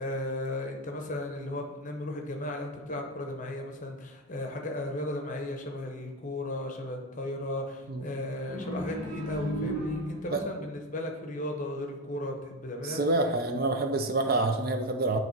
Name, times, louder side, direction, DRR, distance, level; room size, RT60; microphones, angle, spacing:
voice 1, 0.0-13.0, left 1 dB, 35° left, 3 dB, 0.8 m, -35 dB
sound 1, 8.5-10.5, equal, 80° right, 1.5 m, -33 dB
voice 2, 12.8-15.2, right 2 dB, 45° right, 6 dB, 0.5 m, -27 dB
8.8 x 3.1 x 4.4 m, 1.2 s
head